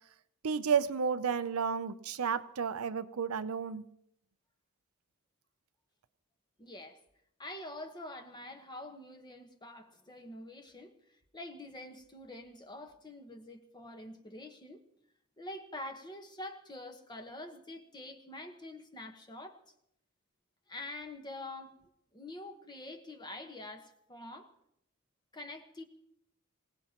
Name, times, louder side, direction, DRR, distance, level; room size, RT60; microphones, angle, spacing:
voice 1, 0.4-3.8, right 6 dB, 70° right, 12 dB, 0.6 m, -32 dB
voice 2, 6.6-7.0 7.4-10.9 11.3-14.8 15.4-19.6 20.7-21.7 22.1-24.5 25.3-25.8, left 1 dB, 20° left, 5 dB, 1.3 m, -46 dB
26.0 x 17.5 x 3.0 m, 0.75 s
head